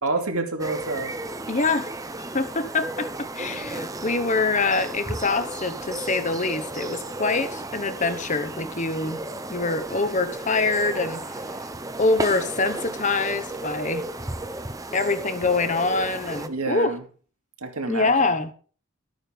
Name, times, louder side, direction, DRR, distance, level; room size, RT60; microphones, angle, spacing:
voice 1, 0.0-1.1 16.5-17.0 17.6-18.1, right 3 dB, 80° right, 2.6 m, -28 dB
sound 1, 0.6-16.5, right 2 dB, 15° right, 0.8 m, -34 dB
voice 2, 1.5-1.9 2.2-9.2 9.5-11.4 12.0-14.1 14.9-16.9 17.9-18.5, left 3 dB, 35° left, 1.1 m, -25 dB
13.5 x 9.1 x 5.3 m
head